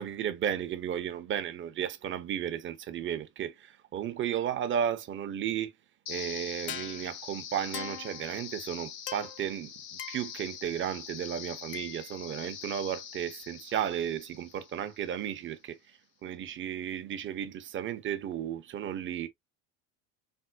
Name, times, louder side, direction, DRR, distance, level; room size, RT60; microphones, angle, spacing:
voice 1, 0.0-5.7 6.1-9.7 10.1-15.8 16.2-19.3, right 9 dB, 25° right, 0.4 m, -34 dB
sound 1, 6.1-15.1, left 9 dB, 55° left, 0.8 m, -42 dB
4.4 x 2.0 x 2.3 m
supercardioid pair, 110°, 47 cm